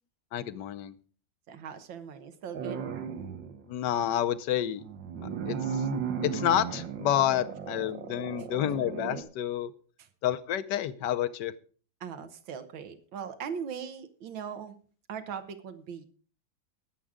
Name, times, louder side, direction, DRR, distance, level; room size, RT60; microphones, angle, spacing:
voice 1, 0.3-0.9 3.7-4.8 5.5-5.9 6.2-9.7 10.2-11.5, left 11 dB, 70° left, 13 dB, 1.3 m, -29 dB
voice 2, 1.5-2.8 12.0-14.8 15.1-16.0, right 7 dB, 90° right, 9 dB, 1.9 m, -39 dB
sound 1, 2.5-3.6 4.8-9.2, right 7 dB, 70° right, 1.7 m, -35 dB
20.5 x 7.5 x 3.7 m, 0.42 s
omnidirectional pair, 2.0 m